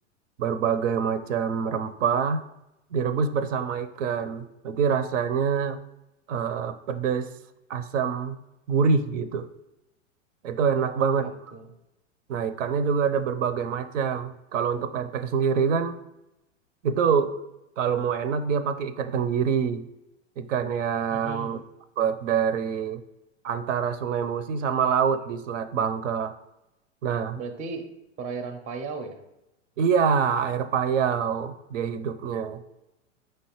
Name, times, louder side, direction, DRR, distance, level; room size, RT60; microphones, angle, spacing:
voice 1, 0.4-2.4 2.9-5.8 6.3-7.3 7.7-8.4 8.7-9.5 10.4-11.3 12.3-16.0 16.8-17.3 17.8-19.9 20.4-21.6 22.0-23.0 23.4-26.3 27.0-27.4 29.8-32.6, right 6 dB, 75° right, 12 dB, 0.5 m, -25 dB
voice 2, 10.8-11.7 21.1-21.6 27.4-27.9 28.2-29.2, right 4 dB, 20° right, 7 dB, 0.4 m, -36 dB
5.2 x 3.2 x 2.9 m, 0.91 s
hypercardioid pair, 110°, 38 cm